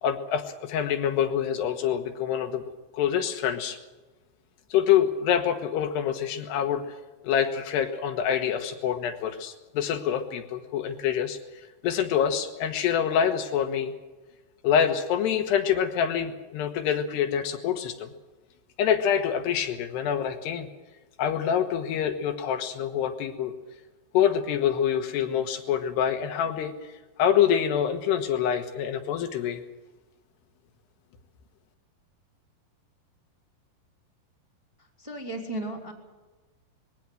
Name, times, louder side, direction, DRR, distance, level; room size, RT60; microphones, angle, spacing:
voice 1, 0.0-2.6 2.9-3.8 4.7-6.9 7.2-11.4 11.8-13.9 14.6-18.1 18.8-20.7 21.2-23.5 24.1-26.7 27.2-29.6, left 9 dB, 75° left, 6 dB, 3.3 m, -26 dB
voice 2, 35.0-35.9, right 1 dB, 10° right, -1 dB, 2.6 m, -34 dB
21.5 x 16.5 x 7.8 m, 1.2 s
omnidirectional pair, 4.9 m